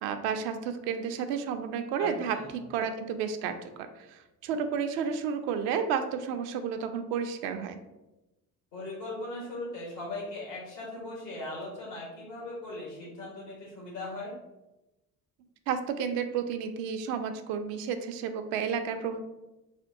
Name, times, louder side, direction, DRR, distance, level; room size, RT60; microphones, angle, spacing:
voice 1, 0.0-2.4 2.7-7.8 15.7-19.2, right 7 dB, 65° right, 8 dB, 0.5 m, -31 dB
voice 2, 2.0-2.5 8.7-14.3, left 2 dB, 85° left, -4 dB, 1.4 m, -39 dB
4.3 x 2.2 x 2.6 m, 1.0 s
hypercardioid pair, 50°, 47 cm